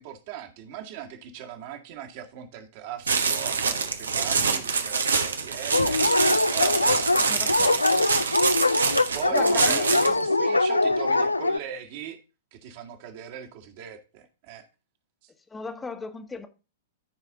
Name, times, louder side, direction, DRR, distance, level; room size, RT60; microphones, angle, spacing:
voice 1, 0.0-6.2 6.5-7.5 8.9-12.2 12.5-14.7 15.2-15.3, right 10 dB, 50° right, 1.9 m, -39 dB
sound 1, 3.1-10.2, right 5 dB, 75° right, 1.2 m, -25 dB
Dog, 5.7-11.6, left 2 dB, 90° left, 0.4 m, -23 dB
voice 2, 7.2-8.1 9.3-10.4 15.5-16.5, left 4 dB, 10° left, 1.3 m, -37 dB
14.0 x 4.9 x 3.9 m
figure-of-eight pair, 105°, 0 cm